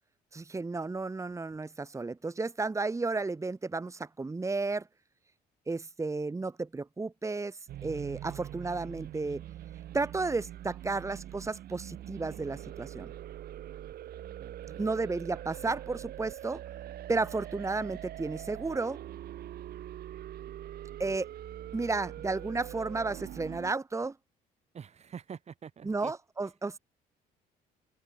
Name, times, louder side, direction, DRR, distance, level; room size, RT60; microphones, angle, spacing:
voice 1, 0.3-4.9 5.7-9.4 9.9-13.1 14.8-16.6 17.1-19.0 21.0-21.3 21.7-24.1 25.8-26.8, right 3 dB, 15° right, 2.8 m, -33 dB
sound 1, 7.7-23.7, right 12 dB, 65° right, 6.9 m, -43 dB
voice 2, 14.4-14.9 24.7-26.1, right 7 dB, 40° right, 3.7 m, -46 dB
open air
cardioid pair, 110°, 17 cm